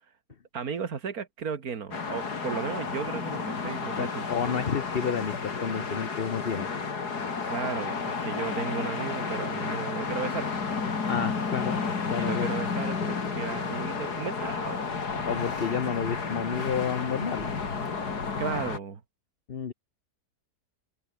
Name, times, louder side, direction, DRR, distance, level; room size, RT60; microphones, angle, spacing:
voice 1, 0.5-4.3 7.5-10.7 12.1-14.8 15.2-15.3 18.4-19.0, right 6 dB, 65° right, 2.2 m, -35 dB
sound 1, 1.9-18.8, left 5 dB, 80° left, 3.1 m, -32 dB
voice 2, 4.0-6.7 11.1-11.8 12.1-12.5 15.3-17.5 19.5-19.7, left 7 dB, 40° left, 1.2 m, -30 dB
open air
omnidirectional pair, 1.7 m